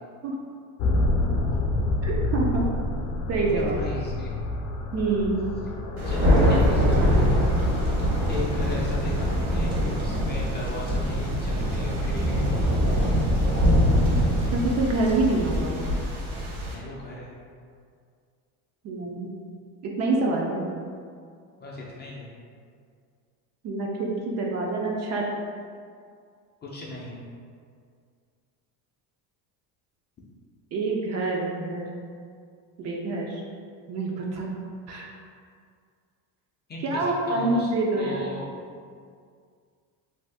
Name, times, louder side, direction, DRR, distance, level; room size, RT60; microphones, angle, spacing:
sound 1, 0.8-14.8, left 1 dB, 75° left, 0.6 m, -29 dB
voice 1, 2.0-2.7 3.3-3.7 4.9-5.5 14.5-15.9 18.8-19.3 19.8-20.7 23.6-25.3 30.7-31.9 32.8-33.4 33.9-34.5 34.9-35.1 36.8-38.2, right 2 dB, 40° right, -1 dB, 0.4 m, -26 dB
voice 2, 3.5-4.3 6.1-7.5 8.3-9.7 10.0-12.7 16.7-17.3 21.6-22.3 26.6-27.2 36.7-38.6, left 1 dB, 25° left, -4 dB, 0.4 m, -37 dB
Thunder, 6.0-16.7, equal, 65° right, 1.1 m, -24 dB
2.7 x 2.4 x 3.3 m, 2.2 s
cardioid pair, 115°, 42 cm